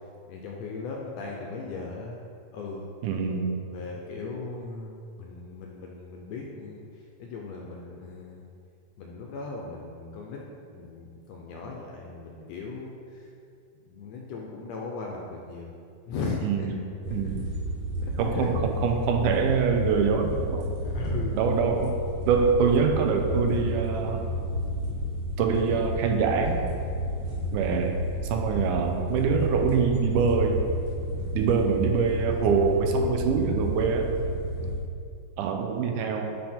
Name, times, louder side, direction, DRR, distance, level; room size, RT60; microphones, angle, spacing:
voice 1, 0.3-2.2 2.5-2.9 3.6-8.4 9.0-13.3 13.8-15.7 16.1-16.7 17.1-17.2 18.0-18.5 20.7-21.4 27.2-27.5 31.0-31.4 34.5-34.8, left 3 dB, 80° left, -1 dB, 1.5 m, -38 dB
voice 2, 3.0-3.6 16.4-16.8 17.1-17.5 18.2-20.8 21.4-22.0 22.3-24.2 25.4-26.6 27.5-28.0 28.3-30.6 31.4-34.1 35.4-36.4, right 6 dB, 90° right, 4 dB, 2.2 m, -24 dB
sound 1, 17.0-34.8, equal, 65° right, 2.4 m, -31 dB
9.6 x 3.4 x 4.4 m, 2.4 s
omnidirectional pair, 3.6 m